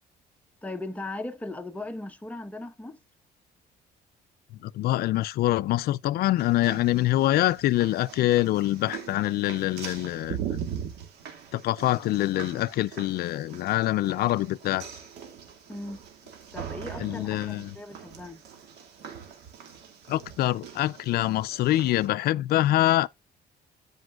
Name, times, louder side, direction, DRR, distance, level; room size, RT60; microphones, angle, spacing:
voice 1, 0.6-3.0 15.7-16.0 16.5-18.4, left 2 dB, 10° left, 1.0 m, -38 dB
voice 2, 4.6-10.4 11.5-14.8 17.0-17.8 20.1-23.1, left 15 dB, 65° left, 0.4 m, -25 dB
sound 1, 6.4-22.1, right 8 dB, 80° right, 2.2 m, -41 dB
14.0 x 5.2 x 2.4 m
cardioid pair, 110°, 17 cm